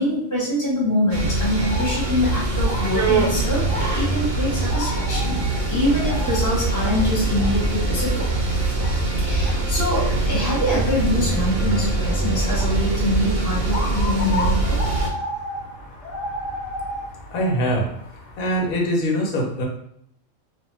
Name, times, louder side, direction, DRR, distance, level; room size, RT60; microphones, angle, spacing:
voice 1, 0.0-8.3 9.2-14.8, left 1 dB, 15° left, -6 dB, 0.8 m, -24 dB
sound 1, 1.1-15.1, right 2 dB, 65° right, 0.6 m, -23 dB
sound 2, 1.6-18.8, left 2 dB, 65° left, 0.9 m, -35 dB
voice 2, 17.3-17.9 18.4-19.6, equal, 90° left, -1 dB, 1.1 m, -22 dB
2.4 x 2.1 x 3.0 m, 0.69 s
omnidirectional pair, 1.4 m